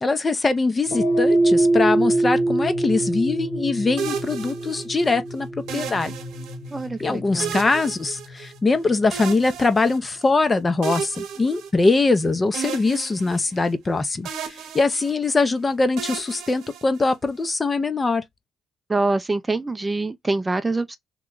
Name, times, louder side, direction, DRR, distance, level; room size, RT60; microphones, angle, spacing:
voice 1, 0.0-6.1 7.0-18.2, left 3 dB, 25° left, 0.6 m, -22 dB
sound 1, 0.9-9.3, right 2 dB, 85° left, 1.1 m, -24 dB
sound 2, 4.0-5.1 5.7-6.8 7.4-8.8 9.1-10.3 10.8-12.2 12.5-13.9 14.2-15.4 16.0-17.3, right 7 dB, 85° right, 0.8 m, -34 dB
voice 2, 6.7-7.6 18.9-21.0, right 2 dB, 20° right, 0.4 m, -25 dB
3.0 x 2.2 x 3.7 m
cardioid pair, 90°, 0 cm